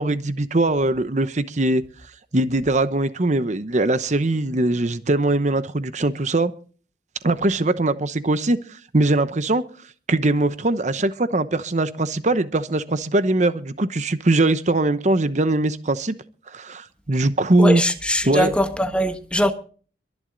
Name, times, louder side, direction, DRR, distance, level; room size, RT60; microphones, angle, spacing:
voice 1, 0.0-1.8 2.3-6.5 7.2-9.6 10.1-16.2 16.5-17.8 18.3-18.5, right 2 dB, 45° right, 0.9 m, -21 dB
voice 2, 17.6-19.5, equal, 5° left, 1.4 m, -21 dB
23.0 x 10.5 x 4.0 m
head